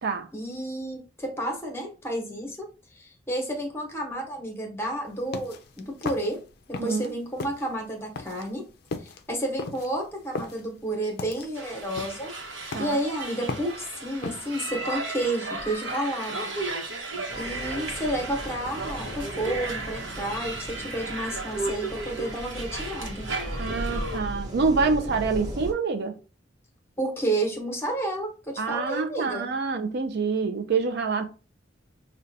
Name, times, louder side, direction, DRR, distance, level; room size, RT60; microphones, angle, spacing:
voice 1, 0.3-6.4 6.7-8.6 9.0-16.5 17.4-23.3 27.0-29.5, right 1 dB, 15° left, 0.9 m, -31 dB
sound 1, 5.1-7.1 7.4-14.6, left 3 dB, 55° left, 0.4 m, -37 dB
voice 2, 6.8-7.1 12.7-13.0 23.6-26.2 28.6-31.2, right 4 dB, 60° right, 0.4 m, -26 dB
sound 2, 11.5-24.2, right 3 dB, 80° right, 0.9 m, -35 dB
sound 3, 17.3-25.7, equal, 20° right, 0.9 m, -37 dB
5.0 x 2.2 x 2.6 m
head